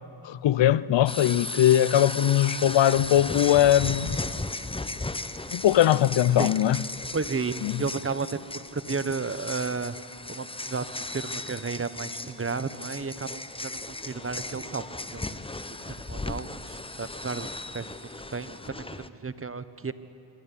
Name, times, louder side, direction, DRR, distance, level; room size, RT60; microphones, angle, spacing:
voice 1, 0.2-4.2 5.5-6.8 7.6-7.8, left 12 dB, 65° left, 0.7 m, -21 dB
sound 1, 1.1-19.1, left 2 dB, 10° left, 0.9 m, -36 dB
voice 2, 7.1-10.0 10.3-15.3 15.8-19.9, right 4 dB, 25° right, 1.1 m, -33 dB
24.5 x 12.5 x 9.8 m
supercardioid pair, 55°, 48 cm